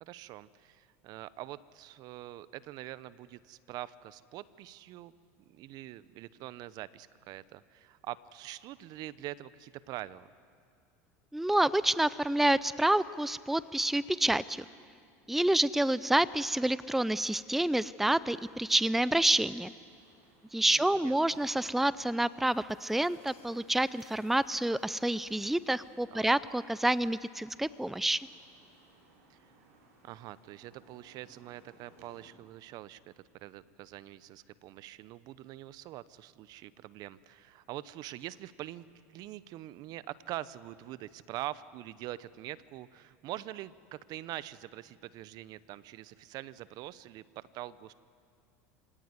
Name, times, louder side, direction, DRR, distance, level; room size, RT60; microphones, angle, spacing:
voice 1, 0.0-5.1 5.5-10.3 20.7-21.4 26.1-26.3 29.3-29.4 30.0-47.9, right 15 dB, 55° right, 17 dB, 0.8 m, -44 dB
voice 2, 11.3-14.6 15.3-19.7 20.5-28.3, right 1 dB, 5° right, 17 dB, 0.5 m, -28 dB
sound 1, 18.1-32.3, right 3 dB, 75° right, 7.0 m, -62 dB
26.5 x 17.5 x 9.6 m, 2.2 s
hypercardioid pair, 95°, 8 cm